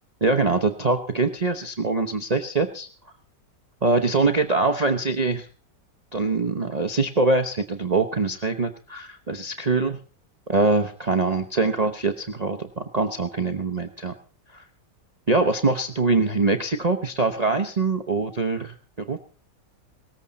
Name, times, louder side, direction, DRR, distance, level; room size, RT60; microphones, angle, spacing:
voice 1, 0.2-2.9 3.8-5.5 6.1-10.0 10.5-14.1 14.5-14.6 15.3-19.2, right 3 dB, 30° right, 6 dB, 0.8 m, -23 dB
19.0 x 14.5 x 4.1 m, 0.40 s
omnidirectional pair, 1.9 m